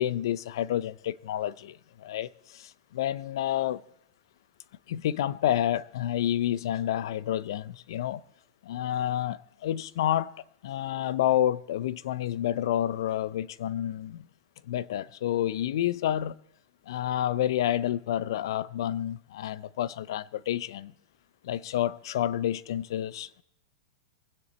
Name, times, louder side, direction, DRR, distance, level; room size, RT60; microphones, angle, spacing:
voice 1, 0.0-3.8 4.9-8.2 8.6-10.3 10.6-14.3 14.7-16.4 16.9-20.9 21.4-23.4, left 11 dB, 70° left, 0.5 m, -29 dB
23.5 x 9.7 x 4.2 m
supercardioid pair, 150°, 2 cm